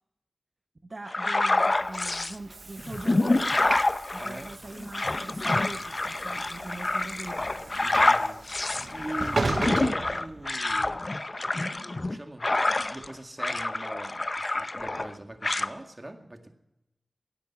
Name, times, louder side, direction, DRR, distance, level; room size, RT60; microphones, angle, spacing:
voice 1, 0.8-3.5 4.1-7.5, right 2 dB, 45° right, 6 dB, 0.9 m, -42 dB
sound 1, 1.1-2.4 2.8-13.1 13.4-15.1 15.4-15.7, left 2 dB, 40° left, 0.7 m, -27 dB
Train / Sliding door, 1.6-10.9, right 3 dB, 70° right, 0.9 m, -37 dB
voice 2, 4.2-4.5 7.8-11.0 11.9-12.6 12.9-16.5, right 1 dB, 25° right, 5 dB, 2.0 m, -42 dB
17.0 x 10.5 x 5.9 m, 0.89 s
wide cardioid pair, 80°, 0 cm